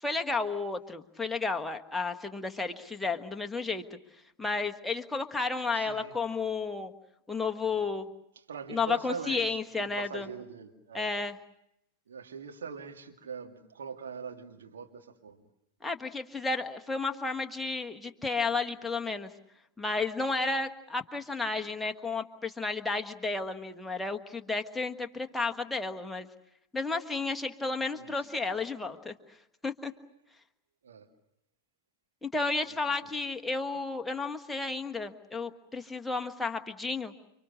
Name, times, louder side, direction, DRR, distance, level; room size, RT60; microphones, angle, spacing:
voice 1, 0.0-4.0 4.4-6.9 7.3-8.1 8.7-10.3 10.9-11.4 15.8-19.3 19.8-26.3 26.7-29.1 29.6-29.9 32.2-37.1, left 3 dB, 5° left, 3 dB, 1.5 m, -32 dB
voice 2, 5.7-6.1 8.4-11.1 12.1-15.4 21.6-21.7 27.9-28.5 30.8-31.1 32.7-32.8, right 6 dB, 65° right, 3 dB, 2.3 m, -43 dB
29.5 x 25.5 x 6.4 m, 0.81 s
figure-of-eight pair, 90°, 0 cm